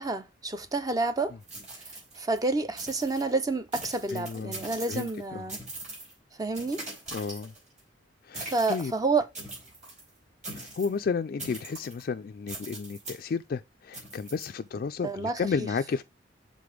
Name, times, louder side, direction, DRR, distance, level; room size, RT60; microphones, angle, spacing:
voice 1, 0.0-1.4 2.2-5.6 6.4-6.8 8.3-9.3 15.0-15.4, right 3 dB, 20° right, 0.5 m, -29 dB
sound 1, 1.4-2.4 2.8-3.3 3.7-5.2 5.5-6.1 6.5-7.8 8.3-8.9 9.3-10.0 10.4-11.0 11.4-12.0 12.5-13.2 13.9-14.5, right 2 dB, 45° right, 4.6 m, -41 dB
voice 2, 4.1-4.6 4.9-5.5 7.1-7.5 8.3-8.9 10.5-16.0, left 5 dB, 50° left, 0.3 m, -32 dB
6.8 x 3.8 x 4.9 m
head